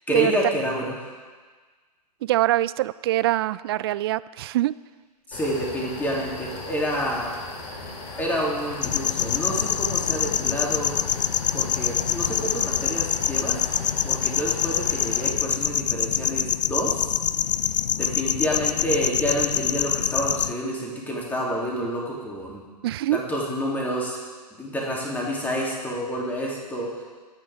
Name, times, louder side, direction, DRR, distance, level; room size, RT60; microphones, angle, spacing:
voice 1, 0.1-0.9 5.3-7.3 8.2-11.0 11.5-13.6 14.0-17.1 18.0-22.6 23.1-24.2 24.6-27.0, equal, 10° left, -3 dB, 3.0 m, -28 dB
voice 2, 2.2-4.7 22.8-23.2, right 15 dB, 35° right, 18 dB, 0.4 m, -24 dB
sound 1, 5.3-15.3, left 3 dB, 30° left, 3.1 m, -38 dB
sound 2, 8.8-20.5, left 8 dB, 80° left, 0.5 m, -25 dB
25.0 x 9.6 x 3.6 m, 1.4 s
figure-of-eight pair, 120°, 21 cm